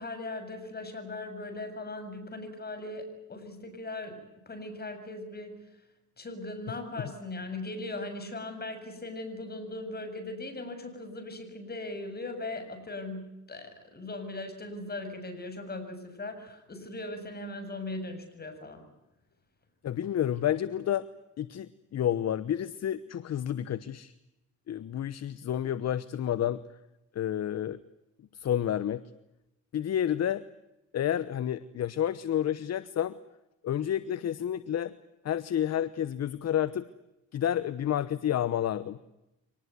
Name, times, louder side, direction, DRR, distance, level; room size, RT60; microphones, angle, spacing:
voice 1, 0.0-5.6 6.2-18.9, left 2 dB, 30° left, 7 dB, 7.4 m, -39 dB
voice 2, 19.8-21.1 21.4-24.1 24.7-26.6 27.1-27.8 28.3-29.0 29.7-30.5 30.9-33.2 33.6-34.9 35.2-36.9 37.3-39.0, left 10 dB, 60° left, 15 dB, 1.1 m, -30 dB
25.0 x 19.5 x 9.5 m, 0.94 s
cardioid pair, 90°, 30 cm